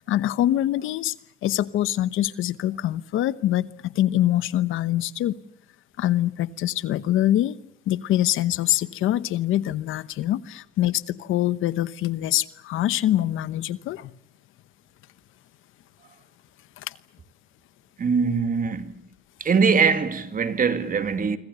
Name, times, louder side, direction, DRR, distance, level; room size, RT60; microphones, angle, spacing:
voice 1, 0.1-1.1 1.4-5.4 6.0-7.6 7.9-14.1 16.8-16.9, left 13 dB, 85° left, 1.0 m, -24 dB
voice 2, 18.0-18.9 19.4-21.4, right 5 dB, 45° right, 2.3 m, -22 dB
27.0 x 25.0 x 6.9 m
cardioid pair, 90°, 20 cm